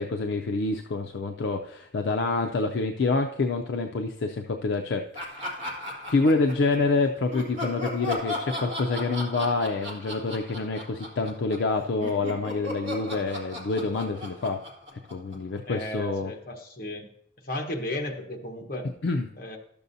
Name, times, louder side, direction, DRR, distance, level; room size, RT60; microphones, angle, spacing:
voice 1, 0.0-5.6 6.1-14.6 15.1-16.3 19.0-19.3, left 3 dB, 65° left, 4 dB, 0.5 m, -27 dB
Laughter, 5.1-6.9 7.3-11.7 12.0-15.6, left 2 dB, 30° right, 1.8 m, -36 dB
voice 2, 15.7-17.1 17.4-18.9 19.4-19.6, left 1 dB, 45° left, 3 dB, 1.1 m, -34 dB
12.0 x 6.9 x 2.7 m, 0.73 s
head